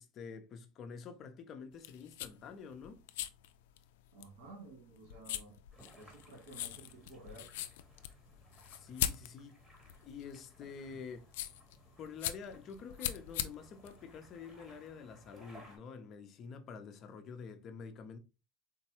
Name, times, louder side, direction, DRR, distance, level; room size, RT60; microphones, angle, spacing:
voice 1, 0.0-3.0 8.7-9.6 10.0-11.3 12.0-18.2, left 5 dB, 40° left, 0.6 m, -48 dB
sound 1, 1.7-14.9, left 12 dB, 85° left, 0.3 m, -42 dB
voice 2, 4.1-5.6 6.0-7.5, right 2 dB, 80° right, 1.9 m, -53 dB
sound 2, 5.7-15.8, equal, 10° right, 1.2 m, -61 dB
3.9 x 2.2 x 2.9 m
supercardioid pair, 130°, 0 cm